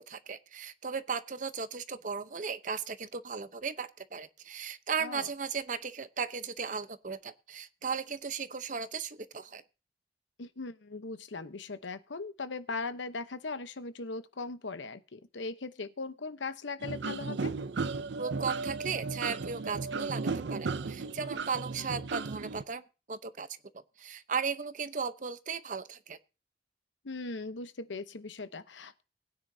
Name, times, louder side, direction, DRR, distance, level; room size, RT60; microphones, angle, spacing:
voice 1, 0.0-9.6 18.2-20.2 20.5-22.8 23.1-23.5 24.0-26.2, right 5 dB, 45° right, 0.8 m, -36 dB
voice 2, 10.4-17.5 27.0-29.0, left 3 dB, 90° left, 0.9 m, -39 dB
sound 1, 16.8-22.6, right 4 dB, 75° right, 0.6 m, -35 dB
20.0 x 9.7 x 2.7 m
head